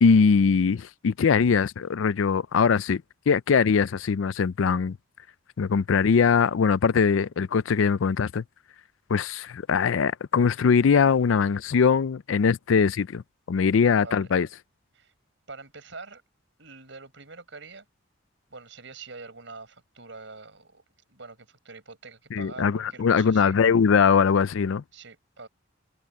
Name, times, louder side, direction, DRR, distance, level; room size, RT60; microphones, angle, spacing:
voice 1, 0.0-5.0 5.6-8.4 9.1-13.2 13.5-14.5 22.3-24.8, left 6 dB, 80° left, 0.4 m, -21 dB
voice 2, 13.8-14.3 14.9-15.1 15.5-16.2 16.6-17.9 18.5-20.8 21.1-23.6 24.9-25.5, right 3 dB, 65° right, 6.9 m, -45 dB
head